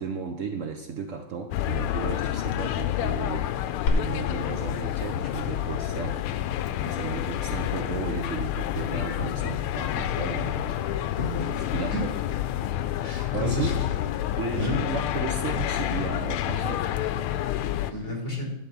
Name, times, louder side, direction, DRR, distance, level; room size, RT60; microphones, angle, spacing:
voice 1, 0.0-6.2 6.8-10.8 11.6-12.0 13.3-13.8 14.4-16.9, right 5 dB, 85° right, 4 dB, 0.6 m, -34 dB
sound 1, 1.5-17.9, left 12 dB, 85° left, 1.5 m, -29 dB
Glass, 3.9-11.8, left 3 dB, 65° left, 1.8 m, -35 dB
voice 2, 10.8-11.5 11.9-12.0 13.0-13.8 14.2-15.0 17.9-18.5, left 2 dB, 15° left, -6 dB, 3.9 m, -32 dB
11.5 x 4.2 x 7.2 m, 0.97 s
omnidirectional pair, 2.3 m